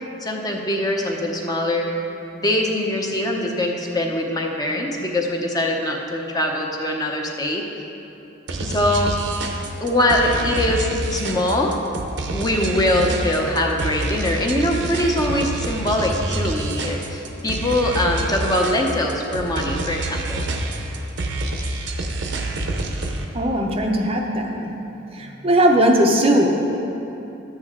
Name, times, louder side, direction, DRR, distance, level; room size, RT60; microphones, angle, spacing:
voice 1, 0.2-1.9 2.3-7.7 8.6-9.3 9.8-11.7 12.3-20.4, left 1 dB, 20° left, 0 dB, 0.7 m, -22 dB
sound 1, 8.5-23.3, right 2 dB, 65° right, 0.8 m, -27 dB
voice 2, 23.3-24.7 25.1-26.8, right 1 dB, 30° right, 1 dB, 0.6 m, -19 dB
12.0 x 8.2 x 3.7 m, 3.0 s
head